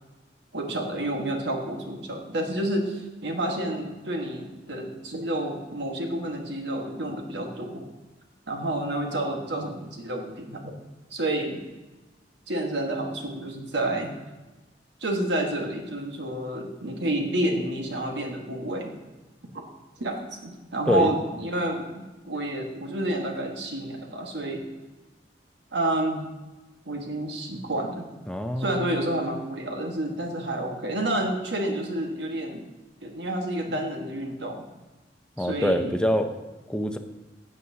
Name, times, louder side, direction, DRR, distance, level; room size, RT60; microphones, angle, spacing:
voice 1, 0.5-7.8 8.5-10.8 11.1-11.6 12.5-14.1 15.0-18.9 20.0-24.6 25.7-26.2 26.8-28.1 28.6-32.7 33.0-34.6 35.4-36.0, right 1 dB, 70° right, 2 dB, 1.4 m, -29 dB
voice 2, 28.3-29.0 35.4-36.3 36.7-37.0, left 1 dB, 5° left, 6 dB, 0.6 m, -25 dB
12.5 x 7.8 x 2.8 m, 1.1 s
head